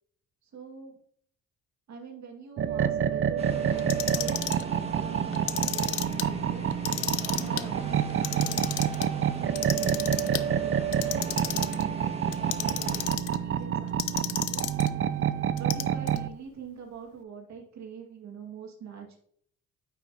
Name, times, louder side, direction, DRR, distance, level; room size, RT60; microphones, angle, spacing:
voice 1, 0.4-1.0 1.9-6.7 7.3-8.7 9.0-10.4 10.6-14.6 15.6-19.2, right 6 dB, 65° right, 2 dB, 2.0 m, -44 dB
sound 1, 2.6-16.3, right 9 dB, 45° right, 0.5 m, -28 dB
sound 2, 3.4-13.1, right 2 dB, 20° right, 1.7 m, -40 dB
Clock, 3.8-4.6 5.3-6.2 6.7-7.6 8.1-9.0 9.6-10.4 10.9-11.8 12.3-13.4 14.0-14.9 15.6-16.2, left 15 dB, 80° left, 0.5 m, -32 dB
8.9 x 5.8 x 2.8 m, 0.63 s
cardioid pair, 90°, 30 cm